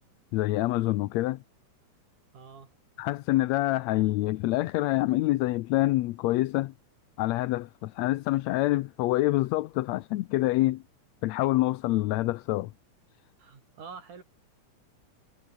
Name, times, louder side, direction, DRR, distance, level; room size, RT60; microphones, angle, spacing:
voice 1, 0.3-1.4 3.0-6.7 7.2-10.8 11.2-12.7, left 17 dB, 75° left, 1.7 m, -26 dB
voice 2, 2.3-2.7 13.4-14.2, right 5 dB, 80° right, 5.4 m, -46 dB
omnidirectional pair, 3.5 m